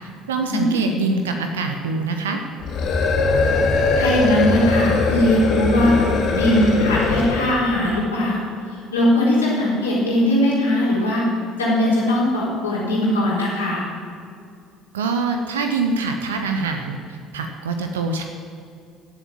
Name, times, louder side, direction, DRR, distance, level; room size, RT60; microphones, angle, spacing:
voice 1, 0.3-2.4 14.9-18.2, right 4 dB, 75° right, 5 dB, 0.9 m, -24 dB
sound 1, 2.6-7.6, left 3 dB, 50° left, 3.3 m, -20 dB
voice 2, 4.0-6.0 6.3-8.5 8.9-11.2 11.6-13.9, left 1 dB, 80° left, -6 dB, 4.1 m, -19 dB
16.5 x 7.4 x 7.5 m, 2.4 s
figure-of-eight pair, 60°, 0 cm